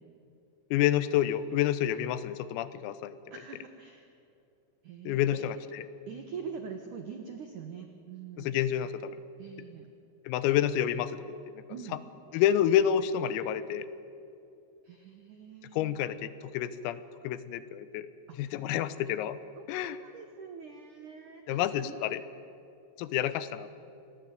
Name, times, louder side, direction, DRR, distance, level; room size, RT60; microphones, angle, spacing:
voice 1, 0.7-3.2 5.1-5.8 8.4-9.2 10.3-11.6 12.3-13.9 15.7-18.1 18.4-19.4 19.7-20.0 21.5-22.2 23.0-23.7, left 11 dB, 90° left, 14 dB, 3.7 m, -29 dB
voice 2, 3.3-4.1 4.8-5.4 6.1-8.5 9.4-9.9 11.7-12.0 14.8-16.0 19.6-22.0, right 6 dB, 80° right, 5 dB, 1.8 m, -44 dB
26.5 x 19.0 x 9.3 m, 2.6 s
omnidirectional pair, 6.0 m